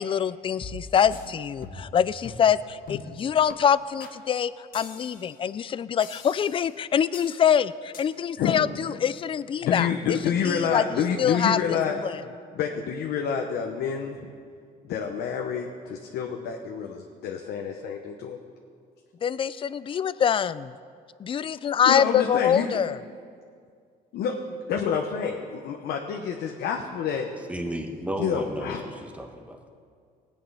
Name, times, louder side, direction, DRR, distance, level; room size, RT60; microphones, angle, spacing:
voice 1, 0.0-10.2 10.4-11.8 12.0-12.2 19.2-20.7 21.2-23.0, left 8 dB, 30° left, 17 dB, 0.4 m, -25 dB
sound 1, 0.6-1.3 1.6-2.0 2.2-2.5 2.9-3.1 3.5-3.6 4.0-4.2 4.7-5.4 6.0-6.7 7.1-7.4 7.9-8.0, left 4 dB, 55° left, 1.8 m, -42 dB
voice 2, 9.6-12.0 12.5-14.3 14.9-18.4 21.9-22.7 24.1-24.4 24.7-27.3 28.2-28.8, left 7 dB, 75° left, 2 dB, 1.0 m, -28 dB
voice 3, 27.5-29.8, right 1 dB, 10° right, 4 dB, 1.4 m, -34 dB
18.5 x 8.6 x 5.6 m, 2.2 s
cardioid pair, 110°, 17 cm